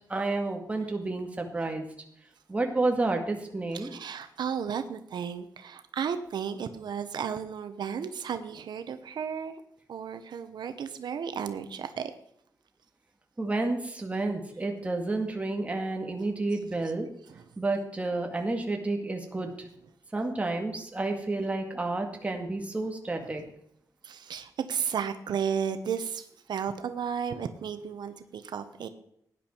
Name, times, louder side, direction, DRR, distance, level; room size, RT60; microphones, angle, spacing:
voice 1, 0.1-1.9 2.5-3.9 13.4-17.1 17.6-19.5 20.1-23.4, right 2 dB, 20° right, 3 dB, 2.0 m, -30 dB
voice 2, 3.7-9.6 9.9-12.1 17.3-17.5 23.2-23.3 24.0-28.9, right 7 dB, 90° right, 9 dB, 1.0 m, -34 dB
17.0 x 10.5 x 4.5 m, 0.72 s
wide cardioid pair, 145°, 7 cm